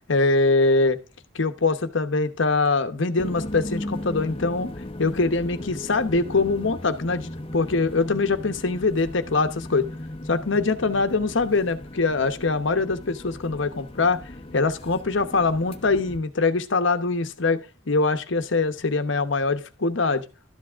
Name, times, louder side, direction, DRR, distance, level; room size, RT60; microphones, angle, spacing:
voice 1, 0.1-1.0 1.3-4.7 5.0-9.9 10.3-14.2 14.5-17.6 17.9-20.2, left 3 dB, 65° left, 11 dB, 0.9 m, -23 dB
sound 1, 3.2-16.2, left 1 dB, 25° left, 0.8 m, -37 dB
12.0 x 7.5 x 3.5 m, 0.32 s
head